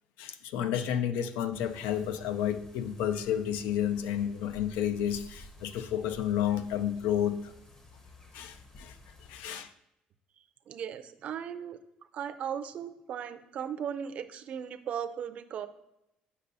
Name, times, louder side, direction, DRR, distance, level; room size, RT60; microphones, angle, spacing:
voice 1, 0.2-7.5 8.3-9.0 9.3-9.7, left 10 dB, 85° left, 11 dB, 0.4 m, -31 dB
sound 1, 1.5-9.5, left 1 dB, 25° left, 0.9 m, -53 dB
voice 2, 10.4-11.8 12.1-15.7, right 8 dB, 50° right, 9 dB, 0.5 m, -37 dB
8.1 x 5.3 x 2.6 m, 0.85 s
cardioid pair, 110°, 3 cm